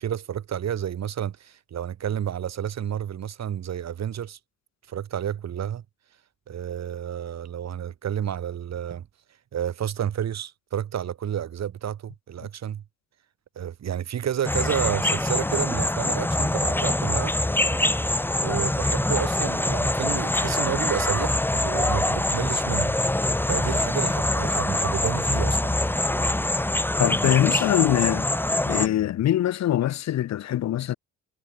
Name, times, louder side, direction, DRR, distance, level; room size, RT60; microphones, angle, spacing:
voice 1, 0.0-4.4 4.9-5.8 6.5-9.1 9.5-12.8 13.6-17.3 18.4-22.9 23.5-25.8, right 9 dB, 60° right, 3.9 m, -30 dB
sound 1, 14.4-28.9, left 1 dB, 5° left, 1.3 m, -24 dB
voice 2, 27.0-28.3 28.6-30.9, left 12 dB, 60° left, 0.9 m, -23 dB
cardioid pair, 90°, 30 cm